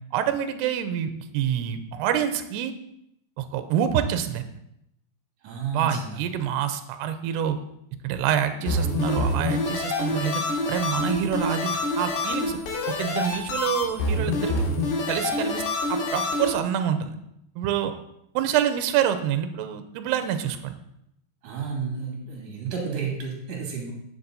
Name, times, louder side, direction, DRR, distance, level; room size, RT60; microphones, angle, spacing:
voice 1, 0.1-2.7 3.4-4.5 5.7-7.6 8.0-10.4 10.7-12.6 12.9-14.6 15.1-15.6 15.9-17.2 17.6-17.9 18.3-20.8, right 9 dB, 80° right, 9 dB, 2.6 m, -26 dB
voice 2, 5.4-6.2 21.4-23.9, right 5 dB, 50° right, -1 dB, 3.5 m, -31 dB
sound 1, 8.7-16.5, left 2 dB, 70° left, 3.8 m, -27 dB
9.8 x 7.4 x 4.0 m, 0.80 s
omnidirectional pair, 5.1 m